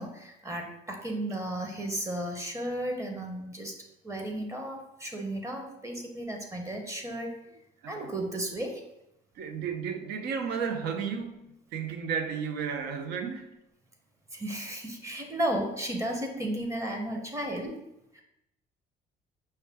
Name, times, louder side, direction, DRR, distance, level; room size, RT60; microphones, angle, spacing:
voice 1, 0.0-3.7 4.0-7.4 7.9-8.8 14.3-17.8 18.1-18.2, right 1 dB, 20° right, 3 dB, 0.7 m, -34 dB
voice 2, 9.4-11.5 11.7-13.5 17.1-17.6, right 6 dB, 75° right, 6 dB, 0.6 m, -33 dB
5.5 x 2.2 x 3.4 m, 0.87 s
cardioid pair, 110°, 17 cm